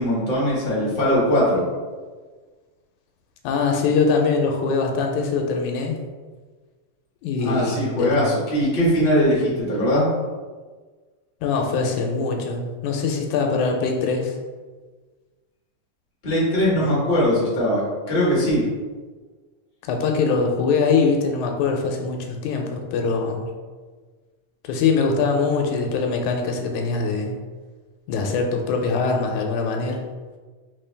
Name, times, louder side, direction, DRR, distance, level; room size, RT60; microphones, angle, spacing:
voice 1, 0.0-1.6 7.4-10.1 16.2-18.6, equal, 35° left, -6 dB, 0.9 m, -20 dB
voice 2, 3.4-6.0 7.2-8.2 11.4-14.4 16.8-17.0 19.8-23.5 24.6-27.4 28.1-30.0, left 4 dB, 85° left, 2 dB, 2.0 m, -23 dB
4.1 x 3.7 x 3.3 m, 1.4 s
omnidirectional pair, 3.4 m